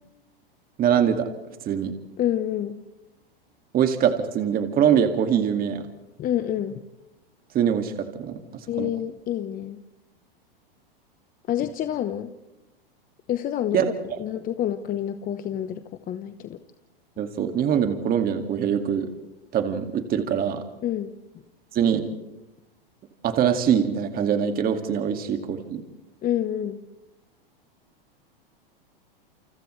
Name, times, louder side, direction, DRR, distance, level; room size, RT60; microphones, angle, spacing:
voice 1, 0.8-1.3 1.7-1.9 3.7-5.8 7.5-8.4 8.8-8.9 13.7-14.2 17.2-19.1 19.5-20.6 21.7-22.0 23.2-25.8, right 8 dB, 30° right, 6 dB, 2.2 m, -23 dB
voice 2, 2.2-2.8 6.2-6.8 8.7-9.8 11.5-12.3 13.3-13.8 14.2-16.6 20.8-21.1 26.2-26.8, left 11 dB, 30° left, 9 dB, 1.0 m, -28 dB
29.5 x 29.0 x 3.3 m, 0.97 s
hypercardioid pair, 115°, 29 cm